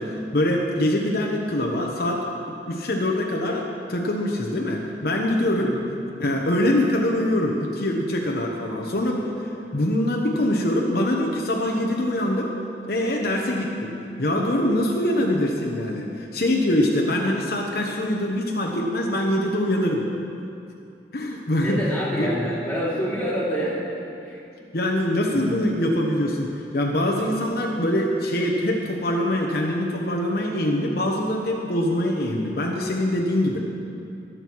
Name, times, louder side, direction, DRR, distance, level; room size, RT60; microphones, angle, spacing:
voice 1, 0.0-2.2 2.5-5.8 6.2-9.3 9.7-12.5 12.9-13.9 14.2-20.0 21.1-21.8 22.2-22.3 24.7-33.6, left 1 dB, 60° left, -1 dB, 1.1 m, -24 dB
voice 2, 21.6-23.9 24.2-24.8 25.3-25.5, equal, 10° left, -7 dB, 3.1 m, -28 dB
22.0 x 7.8 x 4.7 m, 2.7 s
head